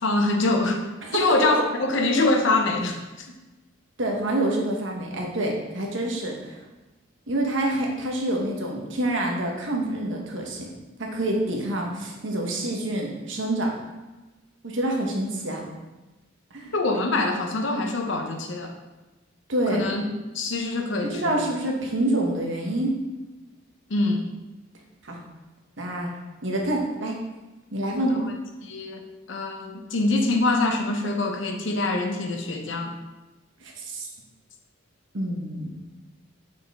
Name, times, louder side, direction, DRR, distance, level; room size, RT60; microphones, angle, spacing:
voice 1, 0.0-0.9 1.1-3.3 16.7-18.7 19.7-20.0 20.3-21.4 23.9-24.3 27.9-28.2 28.6-29.0 29.3-32.9, left 2 dB, 65° left, 4 dB, 0.7 m, -24 dB
voice 2, 1.0-1.5 4.0-6.6 7.3-10.7 11.0-13.7 14.6-15.6 16.5-16.7 19.5-19.9 21.0-23.0 25.0-25.2 25.8-26.1 26.4-27.1 27.7-28.2 33.6-34.1 35.1-35.7, right 1 dB, 65° right, 0 dB, 1.1 m, -27 dB
6.3 x 4.3 x 3.5 m, 1.1 s
head